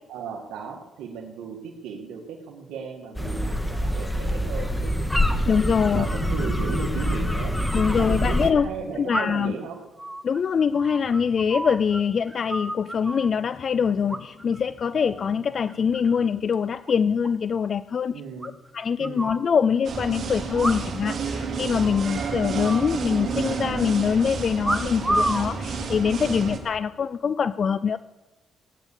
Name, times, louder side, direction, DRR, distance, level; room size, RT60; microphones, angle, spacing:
voice 1, 0.1-5.6 5.9-9.8 18.1-18.5 19.0-19.3, right 6 dB, 90° right, -1 dB, 1.8 m, -36 dB
sound 1, 3.1-8.5, equal, 10° left, 1.7 m, -25 dB
voice 2, 5.4-6.1 7.7-8.7 9.0-9.5 10.2-18.1 18.7-28.0, left 6 dB, 50° left, 15 dB, 0.4 m, -24 dB
sound 2, 7.3-7.4 9.1-9.6 10.0-12.0 12.3-13.3 14.1-14.6 14.9-15.3 15.7-16.2 16.5-16.6 16.8-16.9 17.2-17.3 17.6-17.7 18.4-19.4 20.5-21.1 21.4-21.5 21.8-22.2 22.6-23.5 24.6-25.5 26.2-26.6, right 1 dB, 10° right, 1.2 m, -30 dB
sound 3, 19.8-26.6, right 5 dB, 55° right, 3.2 m, -30 dB
17.0 x 9.7 x 7.3 m, 1.1 s
cardioid pair, 90°, 0 cm